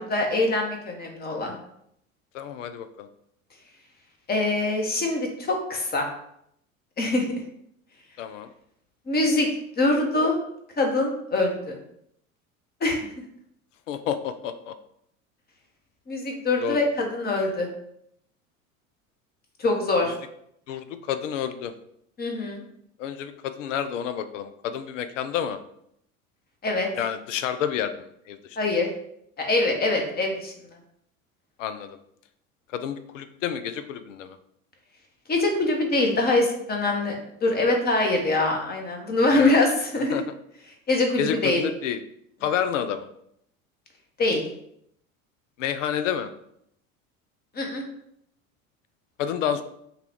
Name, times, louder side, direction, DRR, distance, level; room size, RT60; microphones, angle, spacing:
voice 1, 0.0-1.5 4.3-6.1 7.0-7.4 9.1-9.5 9.8-10.4 10.8-11.8 12.8-13.1 16.1-17.7 19.6-20.1 22.2-22.6 26.6-26.9 28.6-28.9 29.4-30.5 35.3-40.2 40.9-41.6 44.2-44.4 47.5-47.8, left 2 dB, 20° left, 2 dB, 1.0 m, -24 dB
voice 2, 2.3-3.1 8.2-8.5 13.9-14.7 16.6-16.8 20.7-21.7 23.0-25.6 27.0-28.6 31.6-32.0 32.7-34.4 39.3-39.5 40.0-40.2 41.2-42.0 42.4-43.1 45.6-46.3 49.2-49.6, left 9 dB, 60° left, 11 dB, 0.6 m, -29 dB
5.6 x 2.4 x 3.6 m, 0.72 s
figure-of-eight pair, 75°, 42 cm